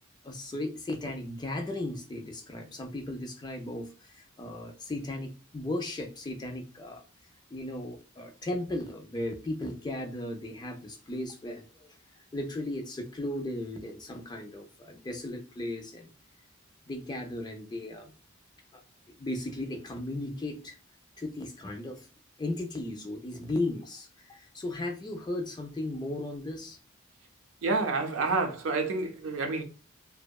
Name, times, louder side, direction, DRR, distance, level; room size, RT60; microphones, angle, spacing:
voice 1, 0.2-7.0 7.5-11.9 12.3-16.1 16.9-18.1 18.7-18.8 19.1-20.8 21.2-22.1 22.4-26.8, left 1 dB, 20° left, 0.3 m, -36 dB
voice 2, 27.6-29.6, right 3 dB, 70° right, 0.5 m, -28 dB
2.7 x 2.1 x 2.2 m
head